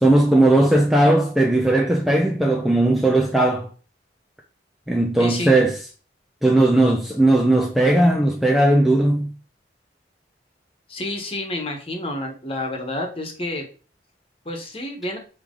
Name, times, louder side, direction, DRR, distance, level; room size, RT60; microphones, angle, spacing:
voice 1, 0.0-3.7 4.9-5.8 6.4-9.3, right 1 dB, ahead, 0.6 m, -17 dB
voice 2, 5.2-5.5 10.9-13.6 14.4-15.2, left 1 dB, 30° left, 1.4 m, -29 dB
8.8 x 3.3 x 3.9 m
head